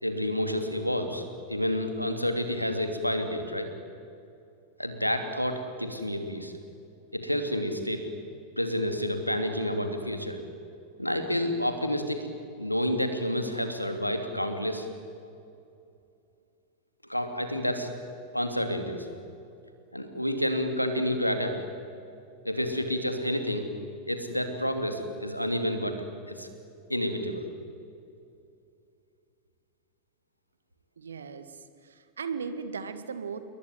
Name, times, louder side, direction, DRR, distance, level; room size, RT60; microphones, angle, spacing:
voice 1, 0.0-3.7 4.8-6.5 7.1-8.1 8.6-10.4 11.0-12.2 12.6-14.9 17.0-17.9 18.3-19.1 19.9-21.6 22.4-23.7 24.1-26.0 26.3-26.5 26.9-27.5, equal, 90° left, 7 dB, 2.8 m, -29 dB
voice 2, 31.0-33.4, right 5 dB, 70° right, 10 dB, 2.0 m, -37 dB
28.5 x 22.5 x 9.3 m, 2.6 s
figure-of-eight pair, 90°, 0 cm